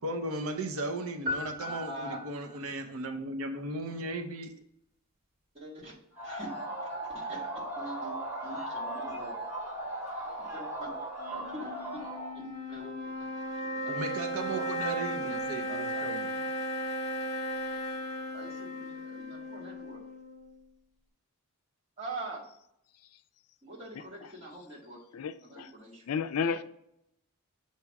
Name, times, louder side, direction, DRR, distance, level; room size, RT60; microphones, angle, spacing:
voice 1, 0.0-4.5 13.9-16.3, right 2 dB, 65° right, 0.6 m, -36 dB
sound 1, 1.3-2.7, left 2 dB, 45° right, 1.5 m, -37 dB
voice 2, 1.6-2.2 5.5-6.0 6.2-6.5 6.8-7.4 7.7-8.2 8.4-9.4 9.7-9.9 10.4-10.9 11.3-12.0 12.3-13.3 13.6-13.9 14.4-16.1 18.3-20.0 22.0-22.5 23.6-25.0 25.4-26.3, right 2 dB, 25° right, 1.7 m, -44 dB
sound 2, 6.2-12.3, right 1 dB, 10° right, 2.1 m, -37 dB
sound 3, 11.2-20.6, equal, 30° left, 1.1 m, -36 dB
voice 3, 25.2-25.7 26.1-26.6, left 6 dB, 75° left, 0.4 m, -31 dB
7.0 x 3.0 x 4.6 m
head